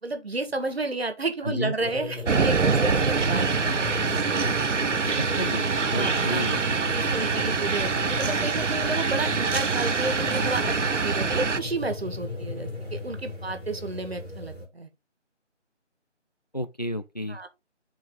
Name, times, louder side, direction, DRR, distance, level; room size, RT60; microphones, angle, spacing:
voice 1, 0.0-3.9 5.9-6.5 6.9-14.9 17.3-17.5, right 2 dB, 55° right, 1.7 m, -31 dB
sound 1, 1.8-14.7, left 2 dB, 5° right, 1.6 m, -36 dB
sound 2, 2.3-11.6, right 5 dB, 80° right, 0.8 m, -25 dB
voice 2, 5.2-6.6 16.5-17.4, equal, 35° left, 0.5 m, -31 dB
7.9 x 4.7 x 3.7 m
figure-of-eight pair, 160°, 36 cm